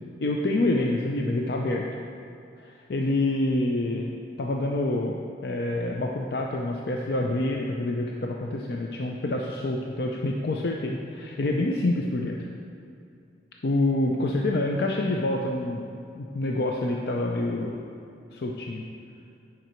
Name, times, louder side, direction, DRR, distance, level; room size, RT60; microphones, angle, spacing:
voice 1, 0.2-1.9 2.6-12.4 13.6-15.8 16.1-17.9 18.3-18.8, left 2 dB, 65° left, 0 dB, 0.5 m, -27 dB
9.3 x 5.1 x 4.4 m, 2.5 s
head